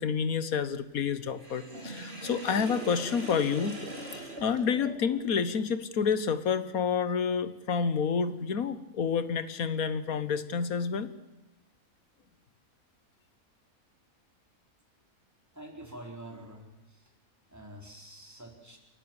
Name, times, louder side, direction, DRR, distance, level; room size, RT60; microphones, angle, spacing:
voice 1, 0.0-3.8 4.4-11.1, left 6 dB, 75° left, 13 dB, 1.7 m, -29 dB
Sink (filling or washing), 1.4-5.3, right 1 dB, 45° right, 3.3 m, -41 dB
voice 2, 15.5-17.0 17.5-18.8, right 1 dB, 10° right, 2 dB, 3.8 m, -46 dB
29.0 x 12.0 x 8.9 m, 1.0 s
omnidirectional pair, 1.5 m